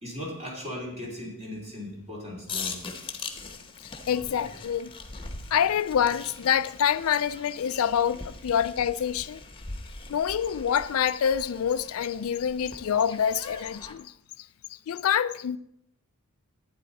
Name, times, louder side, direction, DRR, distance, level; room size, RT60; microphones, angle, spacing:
voice 1, 0.0-2.8, left 1 dB, 30° right, 3.0 m, -37 dB
sound 1, 2.5-13.9, left 4 dB, 25° left, 1.0 m, -41 dB
voice 2, 4.1-4.9 5.5-9.4 10.1-14.1 14.9-15.6, left 8 dB, 70° left, 0.4 m, -26 dB
11.0 x 9.4 x 4.1 m
head